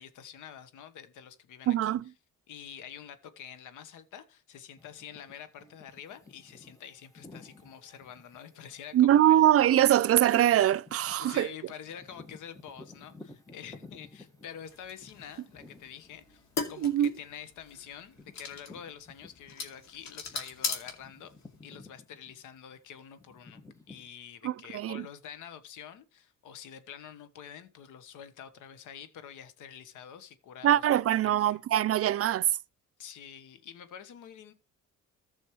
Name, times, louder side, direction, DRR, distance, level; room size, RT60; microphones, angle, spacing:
voice 1, 0.0-2.0 2.5-9.5 11.2-16.4 16.7-21.3 21.6-23.6 23.9-31.6 33.0-34.5, left 9 dB, 85° left, 1.2 m, -47 dB
voice 2, 1.7-2.0 8.9-11.5 16.8-17.1 24.4-25.1 30.6-32.5, right 12 dB, 50° right, 0.5 m, -23 dB
sound 1, 4.8-19.9 20.3-24.1, left 3 dB, 10° left, 1.5 m, -55 dB
sound 2, 14.7-21.6, left 5 dB, 65° left, 2.5 m, -39 dB
15.0 x 6.3 x 3.1 m
cardioid pair, 90°, 30 cm